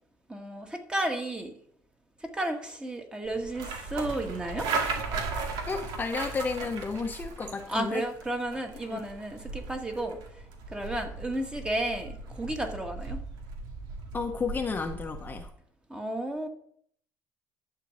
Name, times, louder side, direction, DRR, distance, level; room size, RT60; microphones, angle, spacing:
voice 1, 0.3-1.5 2.2-4.7 7.7-10.2 10.7-13.2 15.9-16.5, right 1 dB, 10° right, 4 dB, 1.6 m, -32 dB
sound 1, 3.2-15.5, right 4 dB, 80° right, 2.0 m, -37 dB
voice 2, 5.7-8.0 8.9-9.0 14.1-15.5, left 4 dB, 25° left, 4 dB, 0.9 m, -32 dB
11.5 x 4.6 x 7.8 m, 0.66 s
cardioid pair, 120°, 7 cm